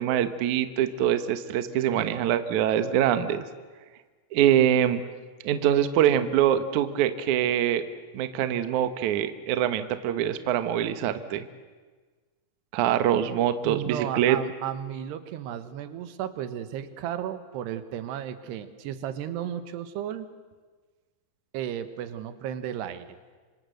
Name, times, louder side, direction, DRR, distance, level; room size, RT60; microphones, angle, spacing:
voice 1, 0.0-3.4 4.3-5.0 5.4-7.8 8.1-11.5 12.7-14.4, right 10 dB, 65° right, 10 dB, 2.1 m, -24 dB
voice 2, 13.6-20.3 21.5-23.1, right 10 dB, 80° right, 11 dB, 3.3 m, -34 dB
26.0 x 26.0 x 7.9 m, 1.4 s
omnidirectional pair, 4.7 m